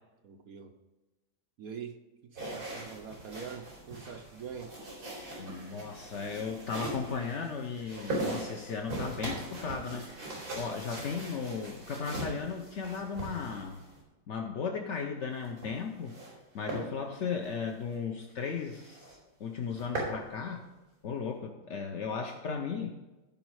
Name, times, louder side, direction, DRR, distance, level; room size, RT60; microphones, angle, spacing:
voice 1, 0.2-0.8 1.6-4.8 10.7-10.8, right 7 dB, 65° right, 5 dB, 0.9 m, -44 dB
sound 1, 2.4-14.0 15.3-16.4 16.7-16.9 17.3-17.5 17.9-18.0 18.3-18.4 18.7-19.2 19.5-20.2, right 2 dB, 50° right, 4.6 m, -40 dB
voice 2, 5.4-10.1 10.5-13.8 14.3-16.1 16.5-20.7 21.0-23.0, left 5 dB, 60° left, 3 dB, 0.7 m, -36 dB
15.5 x 5.3 x 4.8 m, 1.1 s
omnidirectional pair, 2.1 m